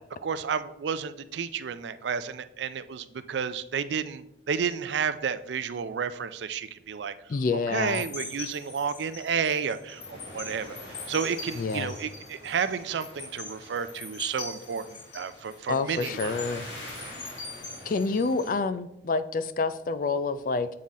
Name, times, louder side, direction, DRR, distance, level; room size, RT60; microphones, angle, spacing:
voice 1, 0.2-7.1 7.5-16.4 17.1-17.2, right 6 dB, 75° right, 13 dB, 0.4 m, -31 dB
voice 2, 7.3-8.0 11.5-11.9 15.7-16.7 17.9-20.7, left 4 dB, 50° left, 13 dB, 0.4 m, -28 dB
sound 1, 7.9-18.6, left 3 dB, 80° left, 1.5 m, -41 dB
7.6 x 3.7 x 4.1 m, 0.82 s
head